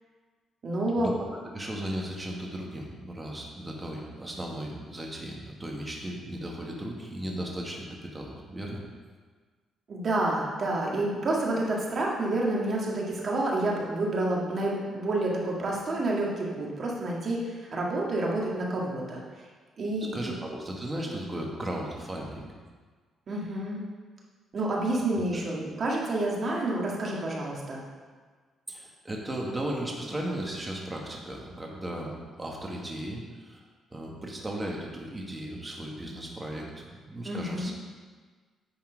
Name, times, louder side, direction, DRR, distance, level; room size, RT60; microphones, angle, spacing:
voice 1, 0.6-1.1 9.9-19.2 19.8-20.1 23.3-23.8 24.5-27.8 37.3-37.7, right 2 dB, 50° right, -3 dB, 2.0 m, -29 dB
voice 2, 1.5-8.8 20.0-22.5 25.3-25.4 28.7-37.7, right 1 dB, 15° right, -1 dB, 1.7 m, -36 dB
9.6 x 4.3 x 5.2 m, 1.5 s
cardioid pair, 90°, 0 cm